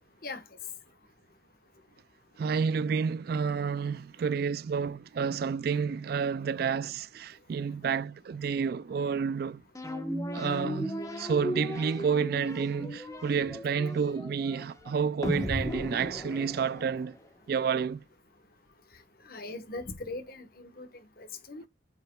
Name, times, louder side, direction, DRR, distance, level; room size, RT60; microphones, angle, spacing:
voice 1, 2.4-9.6 10.3-17.1 17.5-18.0, right 6 dB, 55° right, 0.3 m, -30 dB
sound 1, 9.7-17.2, equal, 15° left, 1.1 m, -36 dB
voice 2, 19.3-20.9 21.2-21.6, left 2 dB, 50° left, 1.2 m, -40 dB
8.8 x 5.7 x 2.3 m
head